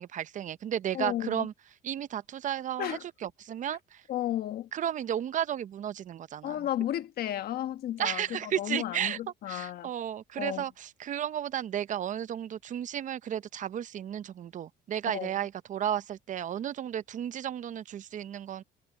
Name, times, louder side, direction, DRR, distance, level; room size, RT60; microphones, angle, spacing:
voice 1, 0.0-1.5 1.8-3.8 4.7-6.6 8.0-9.2 9.5-18.6, right 10 dB, 50° right, 0.7 m, -33 dB
voice 2, 0.9-1.5 2.8-3.1 4.1-4.7 6.4-9.9 10.4-10.6 15.1-15.3, left 12 dB, 65° left, 1.4 m, -33 dB
cardioid pair, 110°, 17 cm